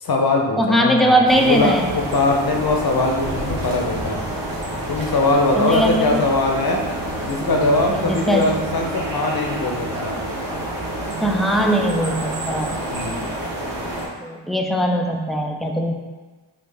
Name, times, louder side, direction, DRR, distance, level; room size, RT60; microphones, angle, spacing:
voice 1, 0.0-4.2 4.9-6.8 7.2-10.2 12.9-13.3, left 2 dB, 50° left, 1 dB, 0.8 m, -21 dB
voice 2, 0.6-1.9 5.6-6.2 7.9-8.5 11.1-12.8 14.2-15.9, equal, ahead, 1 dB, 0.4 m, -20 dB
sound 1, 1.3-14.1, right 1 dB, 45° right, 1.0 m, -28 dB
4.1 x 2.4 x 3.4 m, 1.3 s
cardioid pair, 50°, 48 cm